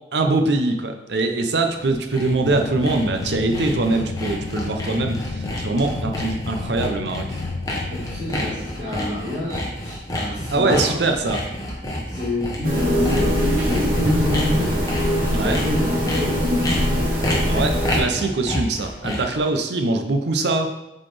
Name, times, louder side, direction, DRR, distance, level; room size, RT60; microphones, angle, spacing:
voice 1, 0.1-7.4 10.5-11.4 15.3-15.6 17.5-20.8, right 2 dB, 70° right, 5 dB, 0.7 m, -23 dB
Sawing, 1.6-19.4, left 1 dB, 20° left, 1.0 m, -29 dB
sound 1, 2.4-8.6, left 3 dB, 55° left, 0.3 m, -32 dB
voice 2, 7.9-11.0 12.1-14.7 15.2-17.1, left 1 dB, 30° right, -12 dB, 1.8 m, -29 dB
sound 2, 12.6-18.0, equal, 50° right, 1.3 m, -21 dB
7.6 x 4.0 x 3.3 m, 0.96 s
head